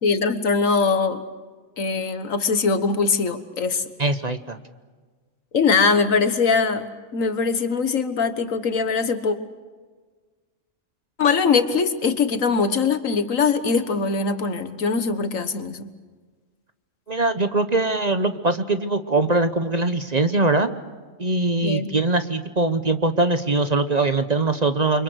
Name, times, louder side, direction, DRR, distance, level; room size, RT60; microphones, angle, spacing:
voice 1, 0.0-1.2 1.8-3.9 5.5-9.4 11.2-15.9 21.6-21.9, left 5 dB, 80° left, 10 dB, 1.8 m, -22 dB
voice 2, 4.0-4.6 17.1-20.7 21.2-25.0, right 2 dB, 35° right, 10 dB, 1.0 m, -22 dB
29.5 x 25.5 x 6.4 m, 1.4 s
omnidirectional pair, 1.4 m